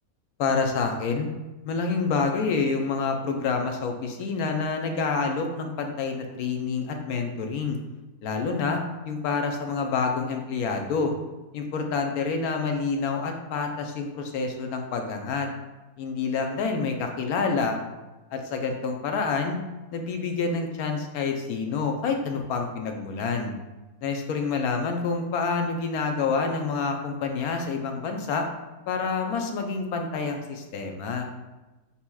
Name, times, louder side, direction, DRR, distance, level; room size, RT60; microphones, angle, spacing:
voice 1, 0.4-1.3 1.6-7.8 8.2-11.1 11.5-15.5 16.0-17.8 18.3-19.6 19.9-23.5 24.0-28.5 28.9-31.3, left 4 dB, 85° left, 4 dB, 1.1 m, -27 dB
6.9 x 2.9 x 2.2 m, 1.1 s
omnidirectional pair, 1.5 m